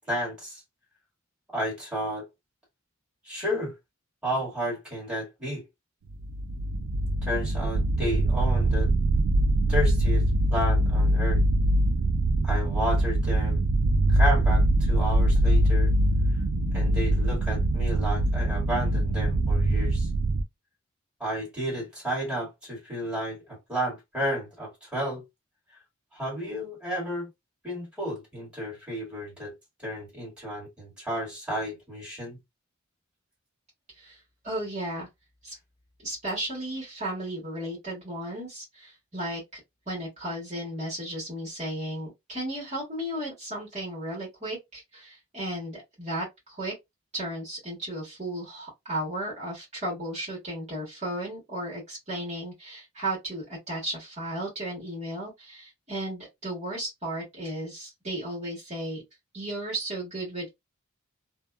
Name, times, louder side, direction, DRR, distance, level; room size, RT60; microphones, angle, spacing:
voice 1, 0.1-0.6 1.5-2.3 3.2-3.7 4.2-5.6 7.2-8.9 9.7-10.3 10.5-11.4 12.4-13.6 14.1-15.9 16.7-20.1 21.2-25.2 26.1-27.3 27.6-29.5 29.8-32.4, equal, 5° right, 1.7 m, -32 dB
sound 1, 6.1-20.4, right 1 dB, 85° right, 0.4 m, -23 dB
voice 2, 34.4-35.1 35.4-35.5 36.0-39.6 39.9-46.7 47.1-59.0 59.3-60.5, right 1 dB, 35° right, 1.3 m, -34 dB
2.7 x 2.2 x 2.2 m
head